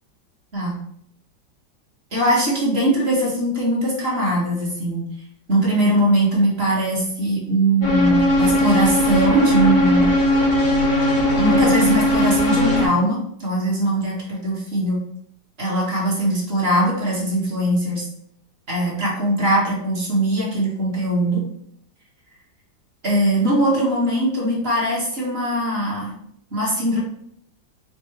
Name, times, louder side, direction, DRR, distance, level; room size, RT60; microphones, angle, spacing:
voice 1, 2.1-5.1 5.5-10.1 11.4-15.0 15.6-18.1 18.7-21.4 23.0-26.2 26.5-27.0, right 1 dB, 35° right, -4 dB, 1.3 m, -21 dB
sound 1, 7.8-12.9, left 1 dB, 40° left, 0.7 m, -18 dB
3.6 x 2.6 x 4.4 m, 0.68 s
omnidirectional pair, 2.1 m